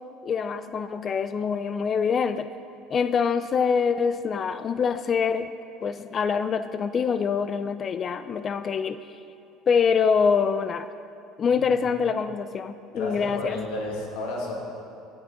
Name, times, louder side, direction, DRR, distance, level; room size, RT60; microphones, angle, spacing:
voice 1, 0.2-2.5 2.9-5.5 5.8-9.0 9.7-10.9 11.4-13.6, left 6 dB, 40° left, 11 dB, 0.3 m, -25 dB
voice 2, 11.5-11.8 12.9-14.6, left 2 dB, 80° left, -1 dB, 1.7 m, -32 dB
8.9 x 8.6 x 3.9 m, 2.5 s
supercardioid pair, 100°, 0 cm